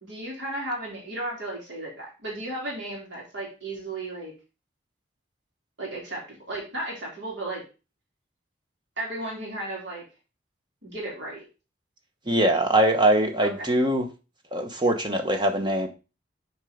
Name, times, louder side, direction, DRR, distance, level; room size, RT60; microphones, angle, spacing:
voice 1, 0.0-4.3 5.8-7.6 9.0-10.0 10.8-11.4 13.4-13.8, right 1 dB, 70° right, -3 dB, 3.1 m, -34 dB
voice 2, 12.3-14.1 14.5-15.9, right 1 dB, 25° right, 5 dB, 1.1 m, -22 dB
7.4 x 4.5 x 5.1 m, 0.31 s
head